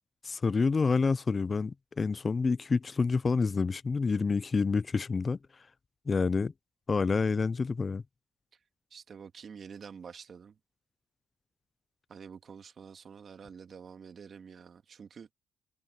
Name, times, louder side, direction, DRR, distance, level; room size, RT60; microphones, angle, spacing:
voice 1, 0.2-5.4 6.1-6.5 6.9-8.0, left 4 dB, 35° left, 0.4 m, -28 dB
voice 2, 8.9-10.5 12.1-15.3, right 6 dB, 50° right, 2.2 m, -48 dB
cardioid pair, 90°, 0 cm